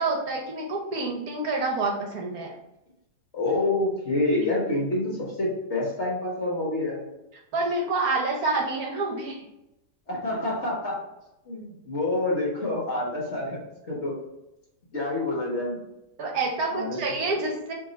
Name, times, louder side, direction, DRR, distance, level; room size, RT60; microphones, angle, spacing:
voice 1, 0.0-2.5 7.5-9.5 16.2-17.7, right 3 dB, 65° right, 1 dB, 1.1 m, -27 dB
voice 2, 3.3-7.1 10.1-11.0 11.5-13.6 13.9-14.1 14.9-15.8 16.7-17.3, left 2 dB, 45° left, -3 dB, 1.4 m, -27 dB
4.6 x 2.9 x 4.0 m, 0.90 s
omnidirectional pair, 1.9 m